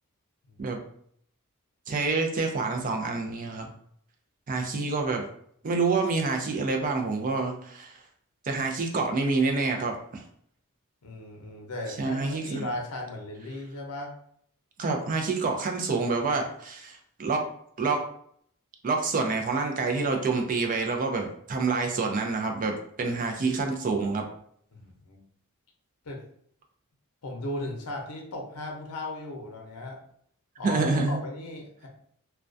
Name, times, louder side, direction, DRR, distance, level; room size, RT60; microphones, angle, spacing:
voice 1, 1.9-3.7 4.5-5.2 5.6-8.0 8.4-10.2 12.0-12.7 14.8-17.4 17.8-18.0 18.8-24.2 30.6-31.2, right 4 dB, 35° right, 3 dB, 0.4 m, -27 dB
voice 2, 11.0-14.1 24.7-25.2 26.0-26.2 27.2-30.0 30.6-31.9, left 1 dB, 90° left, 1 dB, 0.6 m, -36 dB
2.2 x 2.2 x 2.5 m, 0.65 s
head